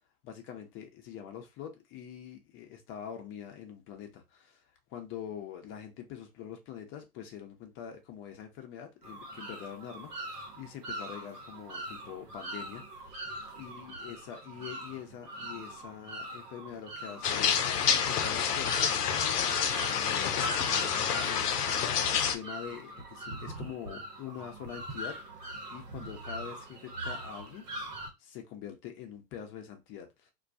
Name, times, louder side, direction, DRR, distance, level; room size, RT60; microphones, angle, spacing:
voice 1, 0.2-4.6 4.9-13.2 13.6-27.6 28.2-30.3, left 9 dB, 25° left, 0.6 m, -45 dB
sound 1, 9.0-28.1, right 1 dB, 85° right, 0.9 m, -42 dB
sound 2, 17.2-22.4, left 7 dB, 85° left, 0.6 m, -28 dB
2.2 x 2.2 x 2.6 m
hypercardioid pair, 105°, 46 cm